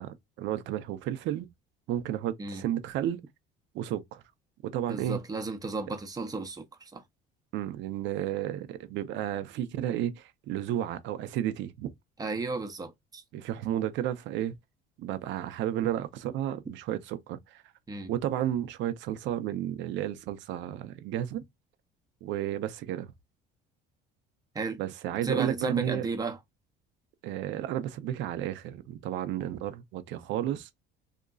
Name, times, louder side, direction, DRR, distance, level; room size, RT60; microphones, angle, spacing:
voice 1, 0.0-1.5 1.9-3.2 3.7-4.2 4.6-5.2 7.5-11.9 13.3-14.6 15.0-17.6 18.1-21.4 22.2-23.1 24.8-26.1 27.2-30.7, right 11 dB, 65° right, 0.6 m, -32 dB
voice 2, 4.9-7.0 12.2-13.2 17.9-18.1 24.5-24.8 25.2-26.4, right 3 dB, 20° right, 0.6 m, -34 dB
2.9 x 2.5 x 2.3 m
cardioid pair, 125°, 21 cm